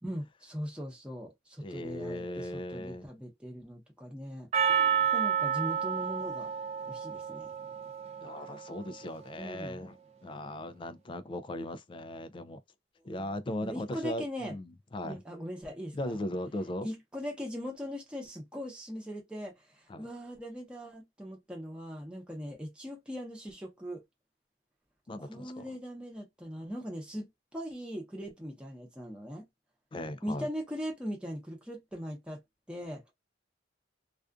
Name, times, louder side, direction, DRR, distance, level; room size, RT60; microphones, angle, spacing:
voice 1, 0.0-4.5 5.1-6.5 6.8-7.5 9.4-9.8 13.2-14.6 15.0-16.2 16.8-24.0 25.2-29.5 30.2-32.4 32.7-33.0, equal, 5° right, 0.8 m, -40 dB
voice 2, 1.6-3.1 8.2-10.0 10.2-12.6 13.0-15.2 15.9-16.9 19.9-20.0 25.1-25.7 29.9-30.5, left 1 dB, 25° left, 0.3 m, -38 dB
Percussion, 4.5-9.0, right 8 dB, 35° right, 0.5 m, -30 dB
2.4 x 2.4 x 2.3 m
head